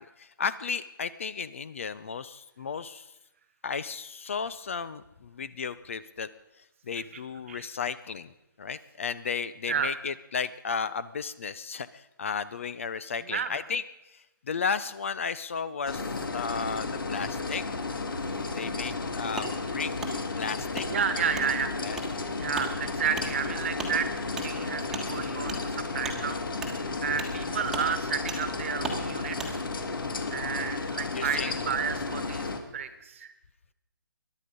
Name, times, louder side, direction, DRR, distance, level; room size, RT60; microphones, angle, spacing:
voice 1, 0.2-3.1 3.6-6.3 6.9-8.3 8.6-13.8 14.1-17.6 18.6-20.8 21.8-22.0 24.5-24.7 26.9-27.0 31.1-31.7, left 6 dB, 35° left, 16 dB, 0.5 m, -34 dB
voice 2, 13.2-13.5 20.9-21.8 22.4-24.1 24.4-26.4 26.7-29.6 30.1-33.3, right 7 dB, 35° right, 11 dB, 1.4 m, -32 dB
sound 1, 15.9-32.6, left 3 dB, 70° left, 2.4 m, -33 dB
Wood, 19.4-19.5 20.0-20.1 20.7-20.9 21.3-21.5 21.9-22.1 22.5-22.7 23.1-23.3 23.8-23.9 24.4-24.5 24.9-25.1 25.5-25.6 26.0-26.2 26.6-26.7 27.2-27.3 27.7-27.9 28.3-28.4 28.8-29.0 29.4-29.5, right 3 dB, 5° right, 1.4 m, -35 dB
22.0 x 11.0 x 5.3 m, 0.94 s
hypercardioid pair, 170°, 12 cm